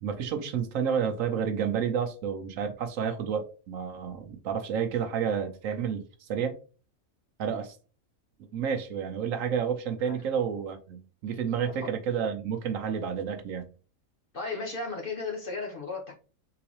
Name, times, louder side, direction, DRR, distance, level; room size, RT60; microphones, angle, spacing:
voice 1, 0.0-6.6 7.4-7.8 8.5-13.6, right 7 dB, 70° right, 7 dB, 1.0 m, -30 dB
voice 2, 14.3-16.1, left 3 dB, 45° left, 1 dB, 1.0 m, -34 dB
3.9 x 3.9 x 3.0 m, 0.37 s
omnidirectional pair, 1.5 m